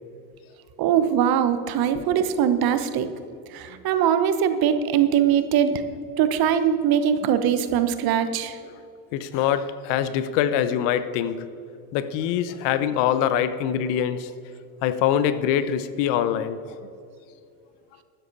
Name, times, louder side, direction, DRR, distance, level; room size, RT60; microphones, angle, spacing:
voice 1, 0.8-3.1 3.5-5.8 6.2-8.6, right 9 dB, 45° right, 10 dB, 1.1 m, -21 dB
voice 2, 9.1-11.5 11.9-14.3 14.8-16.6, left 9 dB, 60° left, 13 dB, 0.9 m, -24 dB
12.5 x 10.0 x 4.1 m, 2.4 s
hypercardioid pair, 85°, 49 cm